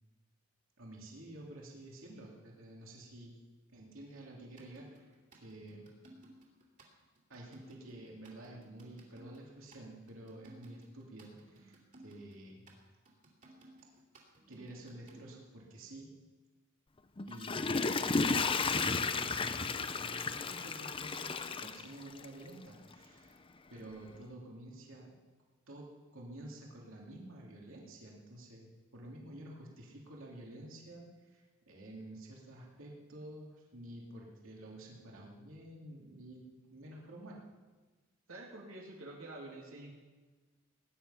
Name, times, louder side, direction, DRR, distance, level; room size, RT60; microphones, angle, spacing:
voice 1, 0.8-3.3 3.7-5.9 7.3-12.6 14.5-16.1 17.2-23.4 23.7-25.1 25.7-37.4, right 1 dB, 70° right, -2 dB, 3.0 m, -50 dB
sound 1, 4.6-15.5 18.4-18.5 19.6-19.7 21.1-21.3, right 1 dB, 40° right, 3.0 m, -58 dB
Water / Toilet flush, 17.2-22.5 22.9-23.0, left 4 dB, 25° left, 0.6 m, -33 dB
voice 2, 38.3-39.9, right 2 dB, 85° right, -2 dB, 2.8 m, -47 dB
19.5 x 10.5 x 5.8 m, 1.3 s
head